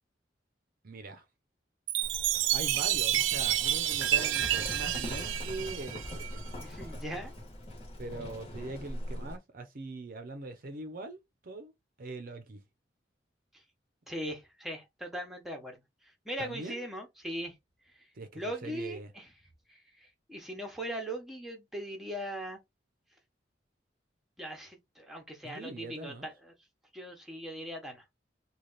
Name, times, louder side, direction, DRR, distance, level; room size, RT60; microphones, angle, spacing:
voice 1, 0.8-1.3 2.5-6.6 8.0-11.7 12.0-12.6 16.4-16.8 18.1-19.1 25.4-26.3, right 2 dB, 50° right, 0.6 m, -42 dB
Chime, 1.9-6.5, right 13 dB, 90° right, 0.4 m, -29 dB
Livestock farm animals working animals, 2.0-9.4, left 1 dB, 35° left, 1.3 m, -41 dB
voice 2, 6.6-7.3 14.1-15.8 16.2-17.5 18.3-19.3 20.3-22.6 24.4-26.3 26.9-28.0, equal, ahead, 0.9 m, -39 dB
3.2 x 2.3 x 3.9 m
head